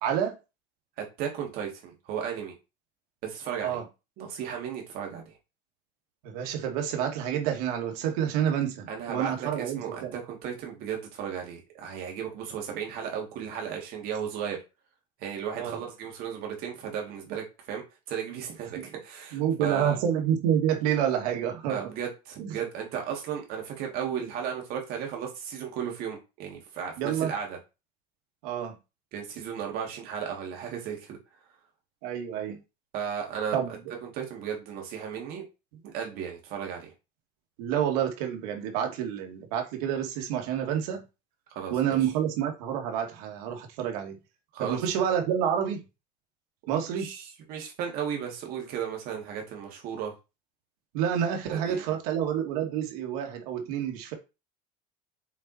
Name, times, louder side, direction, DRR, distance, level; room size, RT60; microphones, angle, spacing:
voice 1, 0.0-0.4 3.6-3.8 6.2-10.1 15.6-15.8 18.8-18.9 19.3-21.8 22.4-22.6 27.0-27.3 28.4-28.8 32.0-32.6 33.5-33.7 37.6-41.0 41.7-44.2 44.6-45.8 46.7-47.1 50.9-54.1, right 9 dB, 90° right, 2.2 m, -28 dB
voice 2, 1.0-2.5 3.2-3.8 4.2-5.3 8.9-14.6 15.2-17.8 18.1-20.0 21.7-27.6 29.1-31.2 32.9-33.6 34.0-35.4 35.9-36.9 41.5-42.0 44.5-44.8 46.9-50.1 51.5-52.0, right 8 dB, 50° right, 2.8 m, -35 dB
7.4 x 4.3 x 4.4 m
cardioid pair, 160°, 19 cm